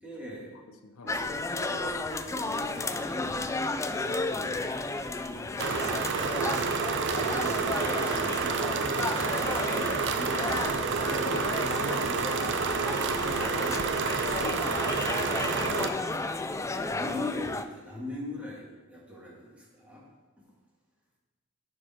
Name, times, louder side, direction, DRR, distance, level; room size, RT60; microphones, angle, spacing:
voice 1, 0.0-0.5 1.0-6.9 7.2-9.1 9.7-10.5 16.5-20.0, left 1 dB, 5° right, -5 dB, 2.0 m, -42 dB
voice 2, 0.7-1.2 7.0-7.3 11.2-14.7, left 3 dB, 75° left, 7 dB, 0.7 m, -43 dB
sound 1, 1.1-17.7, left 2 dB, 15° left, 0.3 m, -33 dB
sound 2, 5.6-15.9, right 5 dB, 55° right, 0.6 m, -29 dB
11.0 x 4.7 x 4.4 m, 1.2 s
head